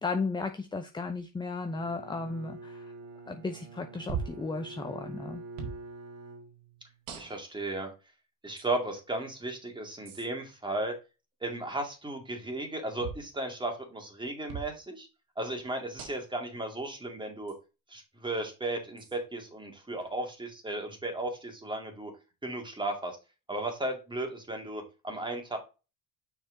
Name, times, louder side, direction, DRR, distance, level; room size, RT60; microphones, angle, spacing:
voice 1, 0.0-2.9 3.3-5.4, left 3 dB, 10° left, 7 dB, 0.7 m, -35 dB
Bowed string instrument, 1.6-7.0, right 2 dB, 40° right, 1.6 m, -47 dB
sound 1, 4.1-4.5 5.6-5.8 7.1-7.6 8.6-8.7 10.1-10.3 13.0-13.3 14.5-14.7 16.0-16.4 17.5-17.6 19.0-19.2, right 6 dB, 80° right, 1.8 m, -39 dB
voice 2, 7.2-7.9 8.4-10.9 11.4-15.1 15.4-17.5 17.9-22.1 22.4-23.2 23.5-25.6, right 2 dB, 15° right, 3 dB, 2.2 m, -35 dB
6.3 x 4.5 x 3.8 m, 0.30 s
supercardioid pair, 95°, 36 cm